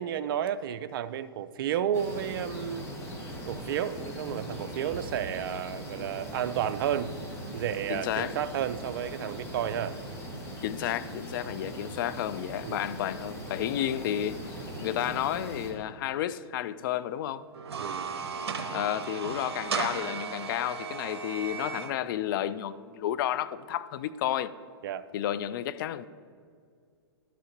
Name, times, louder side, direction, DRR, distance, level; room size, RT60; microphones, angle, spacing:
voice 1, 0.0-2.9 3.5-7.2 7.5-10.0 12.6-12.9 17.8-18.1 24.8-25.1, right 9 dB, 55° right, 0.4 m, -32 dB
sound 1, 1.9-15.7, equal, 20° left, 1.6 m, -40 dB
voice 2, 7.9-8.3 10.6-14.5 14.8-17.4 18.7-24.5 25.1-26.1, left 11 dB, 50° left, 0.4 m, -31 dB
sound 2, 17.5-21.9, right 5 dB, 75° right, 0.8 m, -35 dB
11.0 x 4.1 x 5.8 m
hypercardioid pair, 120°, 14 cm